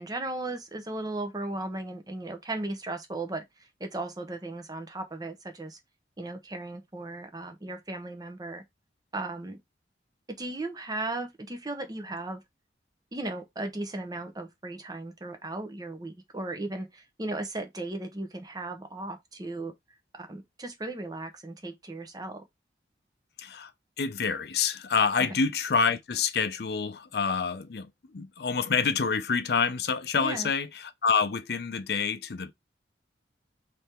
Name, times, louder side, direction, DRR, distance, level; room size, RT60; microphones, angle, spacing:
voice 1, 0.0-3.4 3.8-5.8 6.2-8.6 9.1-9.6 10.4-12.4 13.1-19.7 20.1-22.5 25.2-25.3 30.1-30.5, right 2 dB, 20° right, 0.8 m, -36 dB
voice 2, 23.4-23.7 24.0-32.5, left 5 dB, 60° left, 0.5 m, -27 dB
3.5 x 3.4 x 4.3 m
head